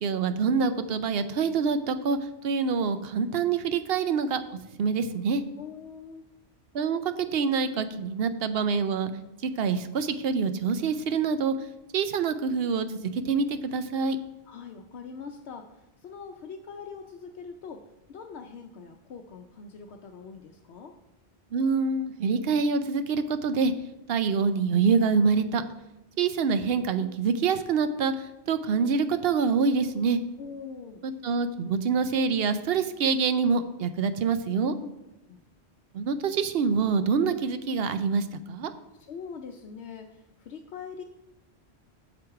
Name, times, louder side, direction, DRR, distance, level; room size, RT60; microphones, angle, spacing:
voice 1, 0.0-4.4 4.8-5.4 6.7-9.1 9.4-11.5 11.9-14.2 21.5-23.7 24.1-25.6 26.2-30.2 31.0-34.7 35.9-38.7, right 5 dB, 70° right, 11 dB, 0.8 m, -26 dB
voice 2, 5.6-6.3 14.4-17.8 18.1-21.0 30.4-31.0 34.8-35.0 35.3-35.4 39.1-41.0, left 6 dB, 80° left, 4 dB, 0.9 m, -42 dB
7.7 x 7.2 x 4.7 m, 0.95 s
omnidirectional pair, 1.1 m